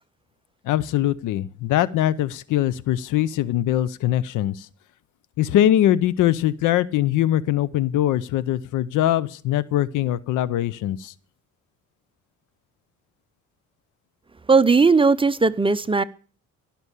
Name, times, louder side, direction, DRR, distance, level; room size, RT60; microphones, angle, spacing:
voice 1, 0.6-4.7 5.4-11.1, left 12 dB, 90° left, 0.8 m, -22 dB
voice 2, 14.5-16.0, right 4 dB, 15° right, 0.7 m, -17 dB
16.5 x 6.0 x 8.3 m
cardioid pair, 90°, 30 cm